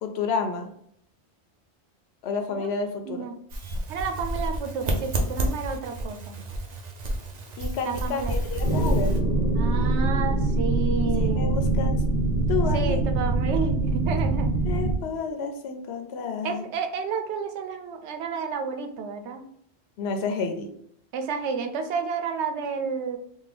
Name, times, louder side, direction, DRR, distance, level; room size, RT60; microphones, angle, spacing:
voice 1, 0.0-0.7 2.2-3.3 7.6-9.2 11.2-12.0 12.5-13.0 14.6-16.7 20.0-20.7, left 5 dB, 75° left, 6 dB, 0.8 m, -30 dB
sound 1, 3.5-9.2, right 1 dB, 50° right, 0.6 m, -30 dB
voice 2, 3.9-6.4 7.8-8.3 9.6-11.6 12.7-14.5 16.4-19.5 21.1-23.2, right 5 dB, 90° right, 6 dB, 0.9 m, -31 dB
sound 2, 8.6-15.0, right 2 dB, 35° left, 0.8 m, -24 dB
3.6 x 2.3 x 3.3 m, 0.69 s
omnidirectional pair, 1.1 m